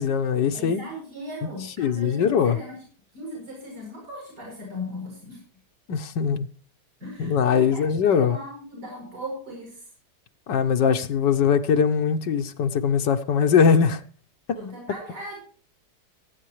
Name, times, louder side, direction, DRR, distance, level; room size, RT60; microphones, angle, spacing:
voice 1, 0.0-0.8 1.8-2.6 5.9-6.5 7.2-8.4 10.5-14.0, left 7 dB, 90° left, 1.7 m, -21 dB
voice 2, 0.5-2.8 3.1-5.4 7.0-7.8 8.1-9.9 14.6-15.4, equal, 70° right, 8.6 m, -38 dB
24.0 x 9.7 x 3.3 m
omnidirectional pair, 1.8 m